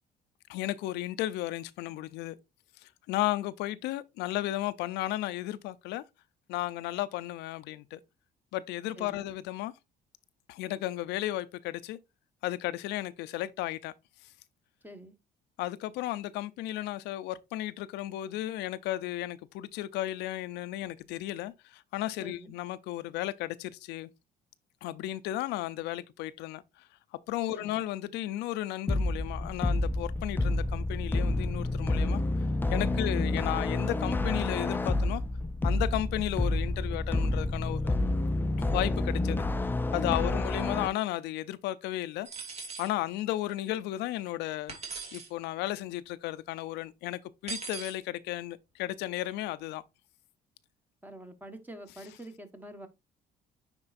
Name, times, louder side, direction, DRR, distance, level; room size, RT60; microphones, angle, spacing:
voice 1, 0.5-2.4 2.8-6.0 6.5-8.0 8.5-9.7 10.5-12.0 12.4-13.9 15.6-24.1 24.8-26.6 27.3-32.2 32.7-35.2 35.6-38.0 38.6-39.4 39.9-42.3 42.8-44.7 45.1-49.8, left 15 dB, 85° left, 0.5 m, -34 dB
voice 2, 8.9-9.3 14.8-15.1 22.2-22.5 27.5-27.8 40.2-40.4 51.0-52.9, right 1 dB, 10° right, 1.3 m, -46 dB
sound 1, 28.9-40.9, left 2 dB, 10° left, 0.5 m, -29 dB
sound 2, 42.3-42.9 44.7-45.3 47.5-48.0, right 5 dB, 40° right, 2.6 m, -40 dB
9.7 x 4.4 x 2.5 m
cardioid pair, 110°, 17 cm